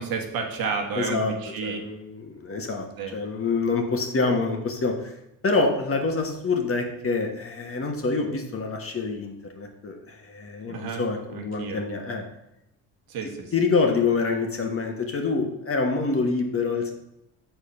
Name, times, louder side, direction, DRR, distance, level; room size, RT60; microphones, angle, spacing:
voice 1, 0.0-1.8 3.0-3.2 10.7-11.0 11.3-11.8 13.1-13.5, right 5 dB, 65° right, 3 dB, 1.5 m, -31 dB
voice 2, 0.9-1.3 1.6-2.9 3.1-5.1 5.4-12.2 13.5-16.9, left 4 dB, 35° left, 3 dB, 1.5 m, -26 dB
6.9 x 4.4 x 5.5 m, 0.88 s
supercardioid pair, 75°, 38 cm